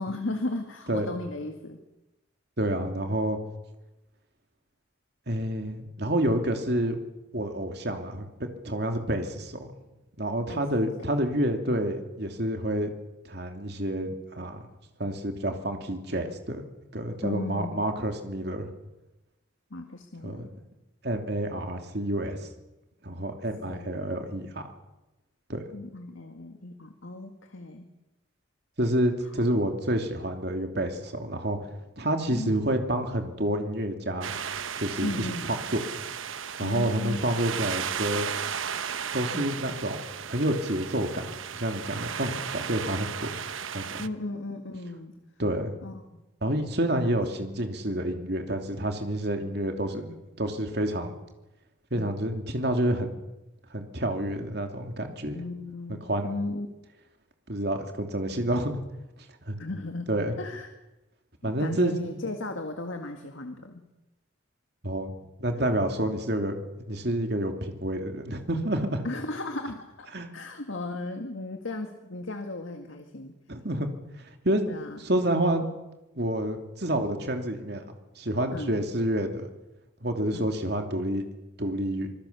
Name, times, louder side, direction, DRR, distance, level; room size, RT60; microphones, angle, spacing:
voice 1, 0.0-1.8 2.7-3.1 10.5-10.7 11.0-11.1 17.2-17.8 19.7-20.5 23.7-24.2 25.7-27.9 32.3-32.6 35.0-35.5 36.6-37.2 39.3-39.5 42.3-42.5 44.0-45.2 45.8-46.2 50.1-50.2 52.0-52.1 55.3-56.7 59.6-60.7 61.4-63.8 65.5-65.8 69.0-70.1 70.3-73.4 74.7-75.0 78.5-78.8 80.3-80.5, left 2 dB, 80° left, 5 dB, 2.0 m, -36 dB
voice 2, 2.6-3.4 5.3-7.0 7.3-9.7 10.2-12.9 13.2-14.6 15.0-16.6 16.9-18.7 20.2-20.5 21.0-22.4 23.0-24.6 25.5-25.6 28.8-31.6 32.0-34.3 34.8-35.8 36.6-38.3 39.1-43.3 43.7-44.0 45.4-45.7 46.4-50.1 50.4-51.1 51.9-53.1 53.7-55.4 55.9-56.3 57.5-58.8 59.4-59.6 60.1-60.3 61.4-62.2 64.8-65.1 65.4-66.6 66.9-69.0 70.1-70.3 73.5-73.9 74.4-74.6 75.0-75.7 76.2-77.8 78.2-79.5 80.0-81.2 81.6-82.1, right 1 dB, 55° right, 4 dB, 2.9 m, -28 dB
sound 1, 34.2-44.1, right 8 dB, 80° right, 0.9 m, -35 dB
26.0 x 21.0 x 7.0 m, 0.98 s
head